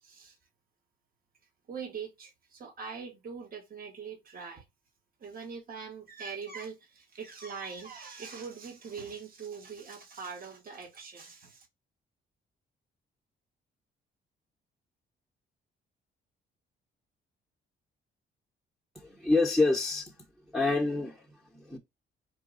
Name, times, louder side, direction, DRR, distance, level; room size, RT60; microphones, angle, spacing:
voice 1, 0.0-0.4 1.7-4.6 5.2-11.7, right 5 dB, 45° right, 1.4 m, -42 dB
voice 2, 18.9-20.1 20.5-21.8, left 3 dB, ahead, 0.9 m, -27 dB
4.8 x 2.3 x 3.8 m
cardioid pair, 90°, 20 cm